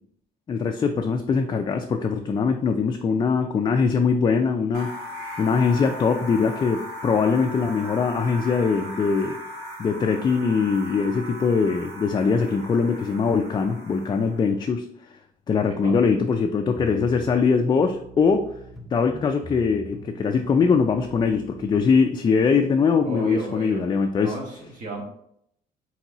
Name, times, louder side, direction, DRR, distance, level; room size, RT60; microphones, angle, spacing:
voice 1, 0.5-9.4 9.8-14.9 15.5-18.5 18.9-24.3, left 5 dB, 25° left, 4 dB, 0.4 m, -22 dB
sound 1, 4.7-14.5, equal, 65° right, 1.8 m, -38 dB
voice 2, 15.6-16.0 23.0-23.8 24.2-25.0, right 2 dB, 50° right, 0 dB, 1.5 m, -34 dB
sound 2, 16.7-22.1, left 1 dB, ahead, 0.8 m, -43 dB
4.3 x 3.9 x 2.9 m, 0.73 s
cardioid pair, 110°, 17 cm